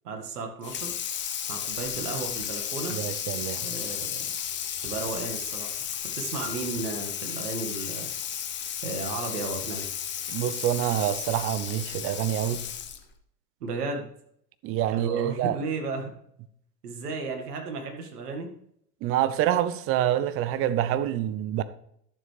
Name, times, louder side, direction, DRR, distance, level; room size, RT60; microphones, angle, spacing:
voice 1, 0.0-0.9 1.5-3.0 3.6-4.2 4.8-5.7 6.1-8.1 8.8-9.9 13.6-14.1 14.9-16.1 16.8-18.5, right 3 dB, 65° right, 2.1 m, -34 dB
Water tap faucet / Sink (filling or washing), 0.6-13.1, left 9 dB, 20° left, 0.9 m, -33 dB
voice 2, 2.9-3.7 10.3-12.6 14.6-15.6 19.0-21.6, right 11 dB, 30° right, 0.6 m, -26 dB
11.5 x 7.1 x 3.4 m
figure-of-eight pair, 90°, 49 cm